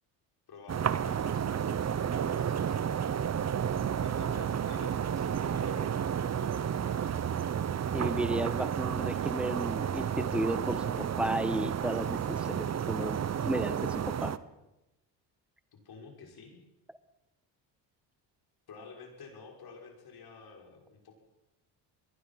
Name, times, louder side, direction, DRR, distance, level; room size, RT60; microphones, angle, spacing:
voice 1, 0.5-1.8 2.1-2.8 4.0-7.3 15.7-16.6 18.7-21.1, left 4 dB, 50° left, 2 dB, 6.2 m, -50 dB
sound 1, 0.7-14.4, right 8 dB, 35° right, 1.0 m, -31 dB
voice 2, 7.9-13.2 13.4-14.3, right 1 dB, ahead, 12 dB, 1.5 m, -33 dB
25.0 x 21.0 x 6.0 m, 0.96 s
supercardioid pair, 85°, 46 cm